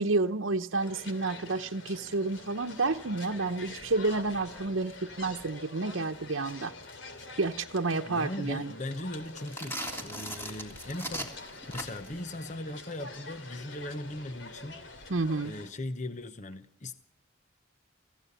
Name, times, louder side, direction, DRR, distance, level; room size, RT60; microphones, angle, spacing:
voice 1, 0.0-6.7 7.4-8.7 15.1-15.5, right 3 dB, 80° right, 3 dB, 0.9 m, -30 dB
sound 1, 0.8-15.7, left 3 dB, 70° left, 3.1 m, -46 dB
voice 2, 8.0-15.2 15.4-17.0, left 1 dB, 40° left, 10 dB, 1.0 m, -39 dB
sound 2, 9.3-12.2, equal, 10° left, 3.3 m, -38 dB
26.5 x 16.0 x 8.2 m, 0.66 s
head